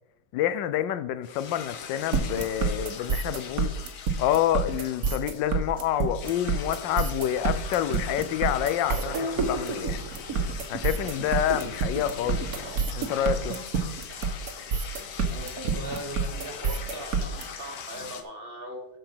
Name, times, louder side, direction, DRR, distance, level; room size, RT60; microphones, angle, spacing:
voice 1, 0.3-3.7 4.2-10.0 10.7-13.6, left 11 dB, 75° left, 1.3 m, -28 dB
sound 1, 1.2-18.2, left 7 dB, 60° left, 1.2 m, -41 dB
sound 2, 2.1-17.4, right 5 dB, 55° right, 1.5 m, -28 dB
voice 2, 15.3-18.9, right 1 dB, 35° right, 1.3 m, -39 dB
13.0 x 4.6 x 5.7 m
omnidirectional pair, 2.0 m